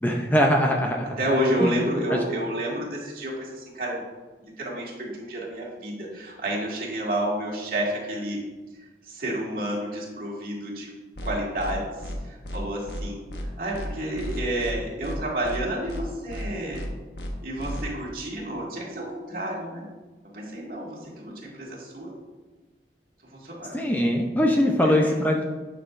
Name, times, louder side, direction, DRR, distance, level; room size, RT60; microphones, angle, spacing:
voice 1, 0.0-1.1 1.6-1.7 2.1-2.2 23.7-25.5, equal, 10° left, 1 dB, 0.6 m, -22 dB
voice 2, 1.2-4.0 4.4-8.4 8.8-10.9 11.2-13.2 13.6-16.8 17.4-19.9 20.3-22.1 23.3-23.8 24.8-25.2, right 1 dB, 55° right, -4 dB, 2.2 m, -30 dB
sound 1, 11.1-11.3 11.6-11.7 12.0-12.2 12.4-12.6 12.9-13.0 13.3-13.4 13.7-13.9 14.1-14.7 15.0-15.2 15.4-15.6 15.9-16.0 16.3-16.4 16.7-16.9 17.1-17.3 17.6-17.8, equal, 75° left, 1.3 m, -34 dB
11.0 x 6.3 x 2.6 m, 1.2 s
head